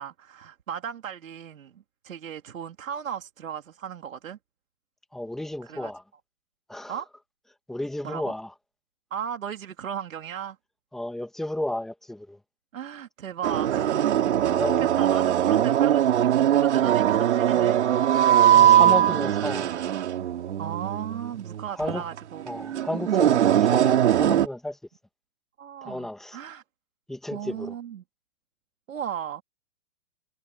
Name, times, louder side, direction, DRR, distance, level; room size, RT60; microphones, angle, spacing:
voice 1, 0.0-4.4 5.6-5.9 6.9-7.1 8.0-8.3 9.1-10.6 12.7-14.1 14.8-17.8 20.6-22.4 25.6-26.6 27.3-28.0 28.9-29.4, right 9 dB, 85° right, 2.8 m, -36 dB
voice 2, 5.1-6.0 6.7-7.0 7.7-8.5 10.9-12.4 14.5-14.9 18.5-19.7 21.7-22.0 22.5-24.8 25.8-26.4 27.1-27.7, left 1 dB, ahead, 1.3 m, -33 dB
sound 1, 13.4-24.5, right 11 dB, 60° right, 2.6 m, -21 dB
hypercardioid pair, 175°, 39 cm